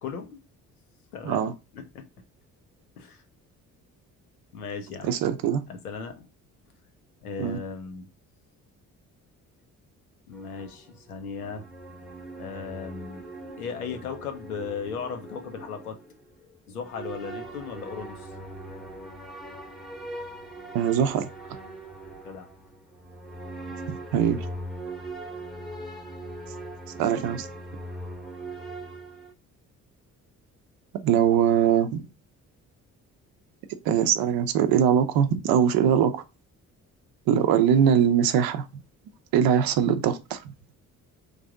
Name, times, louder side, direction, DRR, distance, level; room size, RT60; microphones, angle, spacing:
voice 1, 0.0-0.4 1.1-1.4 1.7-2.1 3.0-3.2 4.5-5.1 5.7-6.3 7.2-8.1 10.3-11.7 12.4-18.3 22.2-22.5, left 5 dB, 90° left, 0.6 m, -37 dB
voice 2, 5.0-5.6 7.4-7.6 20.7-21.3 24.1-24.4 27.0-27.5 31.0-32.1 33.9-36.2 37.3-38.8 39.3-40.4, right 8 dB, 55° right, 0.6 m, -22 dB
sound 1, 10.3-16.2 16.8-29.3, right 1 dB, ahead, 0.8 m, -40 dB
3.3 x 2.6 x 3.5 m
figure-of-eight pair, 40°, 43 cm